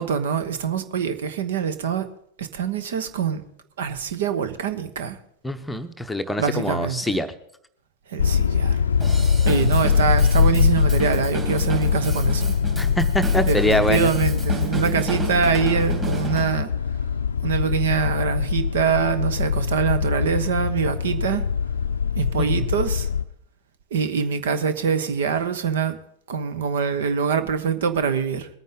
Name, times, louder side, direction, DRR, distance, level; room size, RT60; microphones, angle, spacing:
voice 1, 0.0-2.1 2.4-3.4 3.8-5.2 6.4-7.2 8.1-8.8 9.4-12.5 13.5-16.7 17.4-21.4 22.2-23.1 23.9-26.0 26.3-28.5, right 7 dB, 60° right, 1.1 m, -24 dB
voice 2, 5.4-7.3 12.8-14.1, left 1 dB, 5° left, 0.8 m, -24 dB
sound 1, 8.2-23.2, left 6 dB, 70° left, 0.5 m, -22 dB
Drum kit / Drum, 9.0-16.5, right 4 dB, 20° right, 3.1 m, -33 dB
21.5 x 9.3 x 3.9 m
figure-of-eight pair, 90°, 0 cm